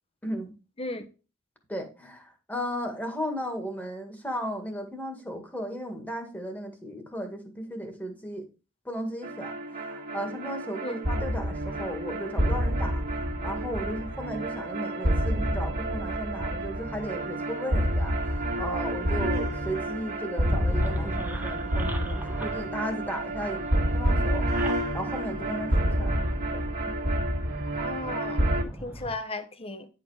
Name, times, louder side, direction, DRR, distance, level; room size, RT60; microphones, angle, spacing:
voice 1, 1.7-8.5 8.9-26.9, equal, 10° left, 1.8 m, -36 dB
sound 1, 9.2-28.6, right 1 dB, 50° right, 1.8 m, -29 dB
sound 2, 20.4-29.1, equal, 10° right, 1.1 m, -38 dB
voice 2, 27.8-29.9, left 2 dB, 25° left, 1.1 m, -36 dB
10.0 x 5.1 x 4.9 m
head